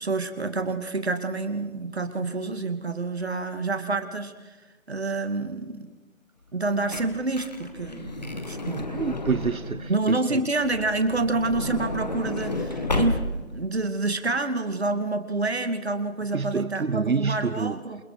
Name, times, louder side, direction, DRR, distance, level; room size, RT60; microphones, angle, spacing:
voice 1, 0.0-4.6 4.9-5.9 6.5-8.8 9.9-18.0, right 3 dB, 50° right, 2.5 m, -28 dB
Truck / Door, 6.5-10.0 11.0-13.6 14.3-14.4 14.6-14.7, left 2 dB, 30° left, 1.7 m, -31 dB
voice 2, 8.9-10.4 16.3-17.8, right 5 dB, 80° right, 1.0 m, -28 dB
sound 1, 10.6-14.9, right 2 dB, 20° right, 3.0 m, -46 dB
28.5 x 22.5 x 5.0 m
figure-of-eight pair, 170°, 41 cm